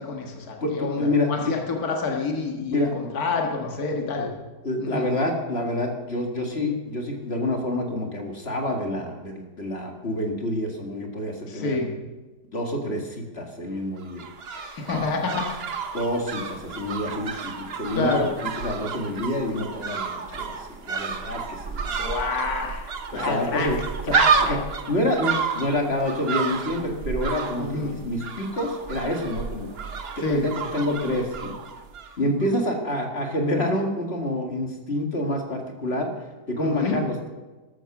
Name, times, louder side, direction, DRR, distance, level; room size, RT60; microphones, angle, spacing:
voice 1, 0.0-4.3 4.8-5.1 11.5-11.9 14.5-15.6 17.9-18.3 22.0-23.7 24.1-24.6 27.6-28.0 30.2-30.4 36.6-37.0, left 4 dB, 60° left, 1 dB, 2.2 m, -28 dB
voice 2, 0.6-1.5 2.7-2.9 4.6-11.8 12.5-14.2 14.8-14.9 15.9-22.1 23.1-23.8 24.1-24.2 24.5-24.6 24.9-29.8 30.2-31.6 32.2-36.1 36.5-37.3, left 1 dB, 40° left, 2 dB, 2.1 m, -27 dB
sound 1, 14.0-32.2 32.4-32.5, right 5 dB, 45° right, 0.9 m, -30 dB
13.5 x 12.5 x 6.1 m, 1.2 s
omnidirectional pair, 1.8 m